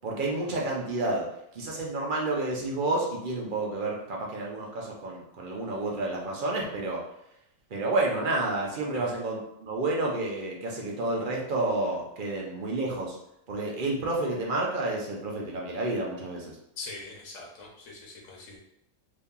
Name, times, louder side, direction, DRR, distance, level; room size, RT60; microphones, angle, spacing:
voice 1, 0.0-1.3 1.5-7.0 7.7-13.2 13.5-16.6, right 2 dB, 50° right, -2 dB, 0.6 m, -30 dB
voice 2, 16.8-18.6, left 3 dB, 65° left, -2 dB, 1.1 m, -42 dB
2.8 x 2.7 x 3.6 m, 0.79 s
omnidirectional pair, 1.5 m